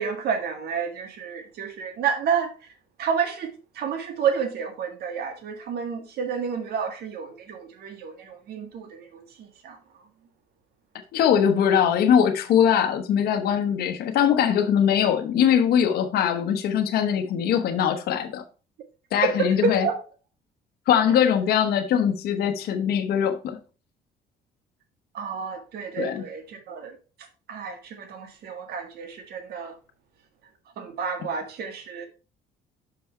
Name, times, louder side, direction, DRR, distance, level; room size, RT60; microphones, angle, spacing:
voice 1, 0.0-2.5 3.0-9.8 19.2-20.0 25.1-27.0 27.5-29.7 30.8-32.1, right 6 dB, 70° right, 1.8 m, -30 dB
voice 2, 11.1-18.4 19.1-19.9 20.9-23.6 26.0-26.2, left 8 dB, 70° left, 1.1 m, -21 dB
6.0 x 5.7 x 4.4 m
cardioid pair, 110°, 17 cm